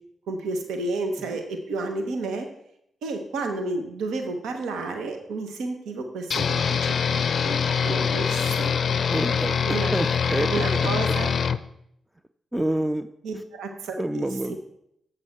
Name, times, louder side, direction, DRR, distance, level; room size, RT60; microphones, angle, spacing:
voice 1, 0.3-2.5 3.0-8.7 9.7-9.9 10.5-11.3 13.2-14.6, right 3 dB, 80° right, 5 dB, 0.9 m, -31 dB
sound 1, 6.3-11.6, left 6 dB, 60° left, 0.4 m, -24 dB
voice 2, 9.1-9.6 9.9-10.9 12.5-13.1 14.0-14.6, right 1 dB, 10° right, 10 dB, 0.5 m, -27 dB
7.9 x 6.5 x 4.4 m, 0.74 s
supercardioid pair, 40°, 0 cm